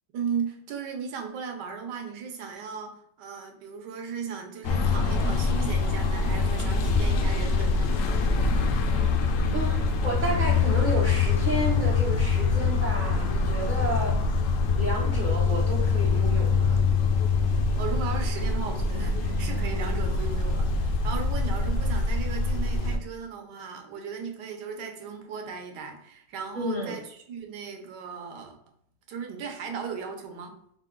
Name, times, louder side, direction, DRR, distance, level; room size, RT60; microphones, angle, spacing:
voice 1, 0.1-8.0 17.8-28.6 29.1-30.6, right 6 dB, 75° right, 3 dB, 1.4 m, -36 dB
sound 1, 4.6-23.0, left 4 dB, 75° left, 0.7 m, -24 dB
voice 2, 9.5-14.2 14.8-16.8 26.5-27.0, right 2 dB, 50° right, -2 dB, 0.6 m, -31 dB
5.2 x 2.3 x 3.6 m, 0.69 s
omnidirectional pair, 1.9 m